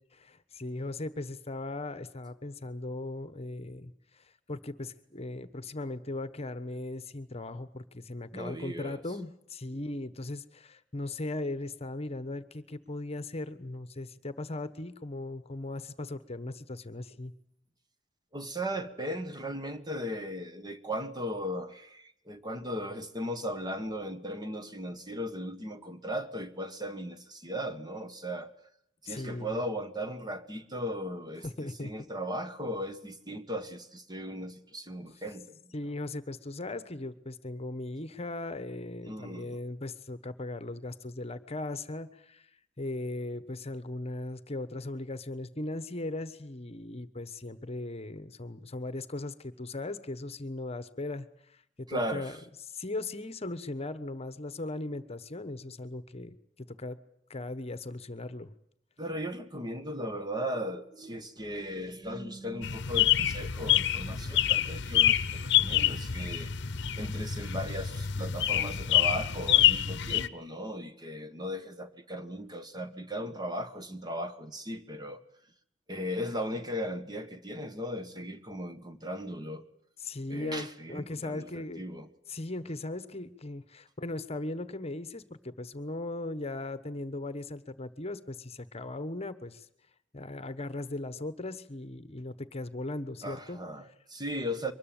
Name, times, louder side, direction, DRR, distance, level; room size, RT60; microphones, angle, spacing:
voice 1, 0.1-17.3 29.1-29.6 31.4-31.9 35.7-42.5 42.8-51.3 51.8-52.4 52.7-56.3 56.7-57.0 57.3-58.5 80.0-81.8 82.3-89.7 90.1-93.6, left 2 dB, 35° left, 13 dB, 1.2 m, -38 dB
voice 2, 8.3-9.0 18.3-28.5 29.0-35.6 39.1-39.6 51.9-52.4 59.0-66.5 66.9-75.2 75.9-79.6 80.3-82.1 93.2-94.7, equal, 20° right, 9 dB, 1.6 m, -37 dB
sound 1, 62.6-70.3, left 11 dB, 65° left, 0.9 m, -27 dB
24.0 x 20.5 x 9.0 m, 0.72 s
head